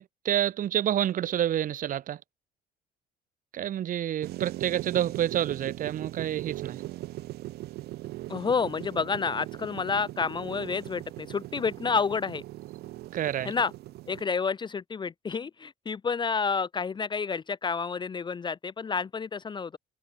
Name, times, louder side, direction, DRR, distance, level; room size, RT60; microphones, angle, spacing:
voice 1, 0.0-2.2 3.5-6.8 13.1-13.5, right 11 dB, 55° right, 1.2 m, -28 dB
sound 1, 4.2-14.2, right 16 dB, 75° right, 0.9 m, -39 dB
voice 2, 8.3-12.4 13.4-13.7 14.1-19.8, left 5 dB, 25° left, 0.7 m, -29 dB
cardioid pair, 110°, 17 cm